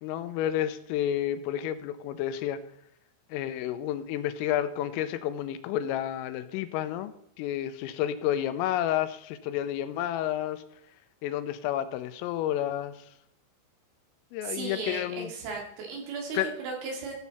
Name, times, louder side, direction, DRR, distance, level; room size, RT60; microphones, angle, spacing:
voice 1, 0.0-2.6 3.3-10.6 11.2-13.1 14.3-15.3 16.4-16.5, left 11 dB, 85° left, 10 dB, 3.3 m, -30 dB
voice 2, 14.4-17.1, right 4 dB, 70° right, 0 dB, 4.7 m, -36 dB
14.0 x 7.1 x 4.2 m, 0.74 s
omnidirectional pair, 5.9 m